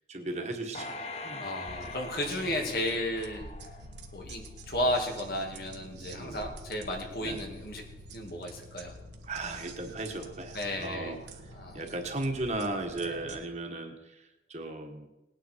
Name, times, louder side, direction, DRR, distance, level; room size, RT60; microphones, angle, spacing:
voice 1, 0.1-0.9 1.2-1.4 6.1-6.4 7.2-7.4 9.3-11.2 11.7-13.9 14.5-15.1, right 2 dB, 40° right, 3 dB, 1.7 m, -35 dB
sound 1, 0.7-4.2 4.7-4.8, left 3 dB, 35° left, 1.1 m, -42 dB
voice 2, 1.4-3.5 4.1-7.8 8.1-8.9 10.5-11.1 11.5-11.8 13.0-13.2, left 1 dB, 55° left, 1 dB, 2.5 m, -33 dB
sound 2, 1.7-13.4, right 1 dB, 80° right, 1.6 m, -47 dB
19.5 x 9.6 x 4.7 m, 1.0 s
head